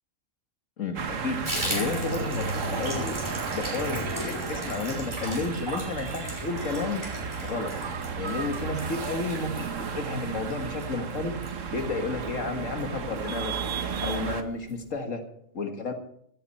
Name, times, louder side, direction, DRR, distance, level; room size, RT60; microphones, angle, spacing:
voice 1, 0.8-3.1 3.5-7.0 7.4-7.7 8.1-11.4 11.7-13.5 14.0-15.2 15.5-15.9, left 3 dB, 90° left, 5 dB, 2.1 m, -32 dB
sound 1, 0.9-14.4, right 5 dB, 85° right, 1.5 m, -34 dB
Water tap faucet / Bathtub (filling or washing), 1.4-12.4 12.7-12.9 13.2-13.3 13.5-14.0 14.3-14.4 14.7-14.8, equal, 20° right, 6.4 m, -36 dB
15.5 x 14.0 x 4.4 m, 0.71 s
omnidirectional pair, 1.3 m